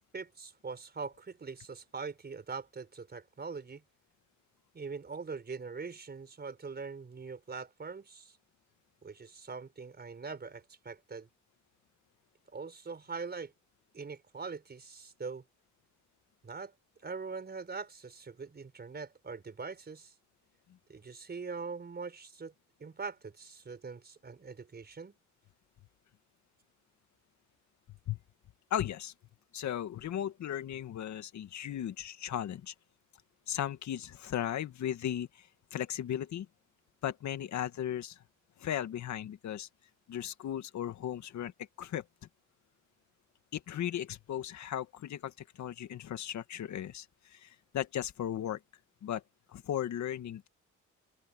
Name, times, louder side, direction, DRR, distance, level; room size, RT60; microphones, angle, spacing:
voice 1, 0.1-3.8 4.7-8.4 9.0-11.3 12.5-13.5 13.9-15.4 16.4-16.7 17.0-20.1 20.9-22.5 22.8-25.1, right 4 dB, 35° right, 4.7 m, -42 dB
voice 2, 28.7-29.1 29.5-32.7 33.5-36.5 37.0-38.2 38.6-39.7 40.1-41.5 41.8-42.0 43.5-48.6 49.0-49.2 49.5-50.5, left 10 dB, 65° left, 1.8 m, -36 dB
open air
cardioid pair, 90°, 30 cm